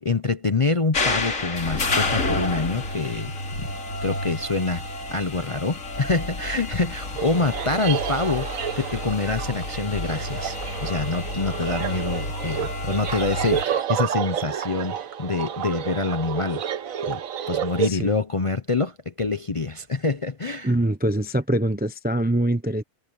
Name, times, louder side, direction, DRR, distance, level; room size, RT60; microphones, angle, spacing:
voice 1, 0.0-3.7 4.0-4.8 5.1-8.5 8.8-16.6 17.0-17.2 17.5-20.7, left 3 dB, 35° left, 0.6 m, -26 dB
sound 1, 0.9-13.6, left 2 dB, 70° left, 3.0 m, -30 dB
sound 2, 7.1-17.9, right 8 dB, 75° right, 1.4 m, -30 dB
voice 2, 17.8-18.2 20.6-22.8, right 1 dB, 10° right, 0.5 m, -24 dB
omnidirectional pair, 1.4 m